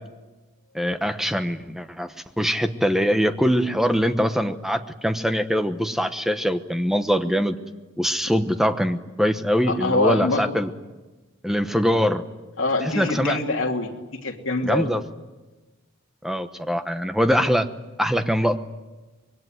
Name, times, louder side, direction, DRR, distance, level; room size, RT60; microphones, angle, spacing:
voice 1, 0.7-7.6 8.0-10.7 11.4-12.2 13.0-13.4 14.6-15.0 16.2-17.7 18.0-18.6, equal, ahead, 8 dB, 1.0 m, -23 dB
voice 2, 9.7-10.6 12.6-13.9 14.2-14.9, left 3 dB, 65° left, 2 dB, 3.0 m, -24 dB
26.0 x 22.0 x 9.4 m, 1.2 s
head